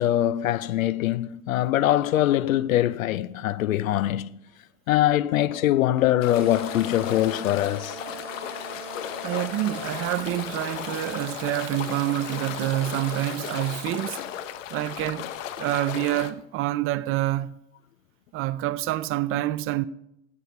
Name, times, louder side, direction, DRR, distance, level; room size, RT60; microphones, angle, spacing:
voice 1, 0.0-4.3 4.9-8.0, left 13 dB, 85° left, 0.6 m, -23 dB
sound 1, 6.2-16.3, left 10 dB, 70° left, 1.0 m, -35 dB
sound 2, 6.3-10.0, right 3 dB, 15° right, 3.6 m, -41 dB
Water tap faucet / Sink (filling or washing), 8.4-15.2, right 12 dB, 50° right, 1.1 m, -46 dB
voice 2, 9.2-14.2 14.7-15.3 15.6-17.5 18.3-19.8, right 15 dB, 35° right, 0.4 m, -27 dB
15.5 x 6.9 x 4.7 m
hypercardioid pair, 100°, 40 cm